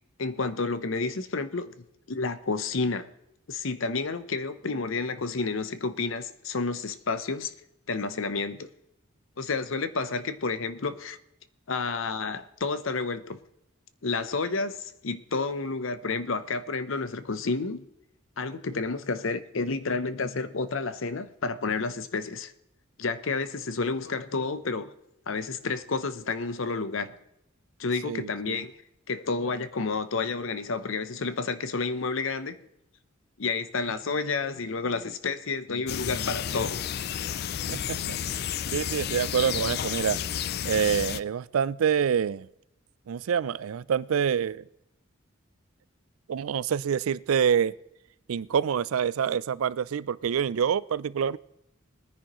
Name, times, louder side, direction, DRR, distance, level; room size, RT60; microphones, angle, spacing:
voice 1, 0.2-1.7 2.1-3.1 3.5-7.5 7.9-8.7 9.4-11.2 11.7-13.4 14.0-17.9 18.4-22.5 23.0-24.9 25.3-27.2 27.8-28.7 29.1-32.6 33.4-37.0, left 4 dB, 70° left, 0.7 m, -30 dB
voice 2, 28.0-28.7 37.7-40.2 40.6-42.5 43.1-44.7 46.3-47.7 48.3-51.4, right 7 dB, 90° right, 0.4 m, -27 dB
sound 1, 35.9-41.2, left 9 dB, 50° left, 0.3 m, -31 dB
21.0 x 10.0 x 3.0 m
head